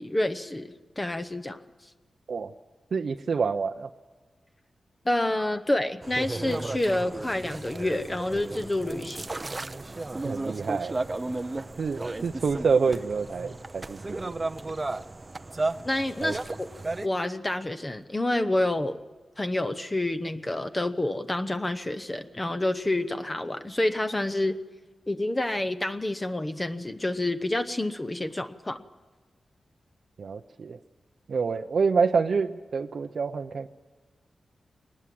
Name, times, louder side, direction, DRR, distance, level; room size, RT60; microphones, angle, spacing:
voice 1, 0.0-1.6 5.0-9.3 15.8-16.7 17.0-19.0 19.4-24.6 25.1-28.8, left 1 dB, 20° left, 9 dB, 0.8 m, -28 dB
voice 2, 2.9-3.9 10.2-11.0 11.8-14.4 16.2-16.4 30.2-30.8 31.3-33.7, right 5 dB, 60° right, 5 dB, 0.7 m, -27 dB
sound 1, 6.0-17.1, right 2 dB, 25° right, 0.6 m, -34 dB
22.0 x 20.0 x 7.7 m, 1.3 s
wide cardioid pair, 130°, 0 cm